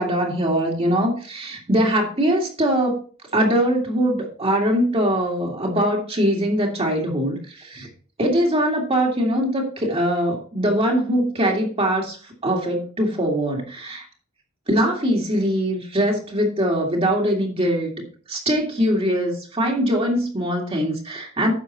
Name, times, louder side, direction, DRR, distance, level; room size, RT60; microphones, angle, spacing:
voice 1, 0.0-3.0 3.3-7.9 8.2-12.2 12.4-14.1 14.7-17.9 18.3-21.5, equal, 25° right, 0 dB, 2.1 m, -22 dB
9.9 x 7.0 x 4.1 m, 0.41 s
head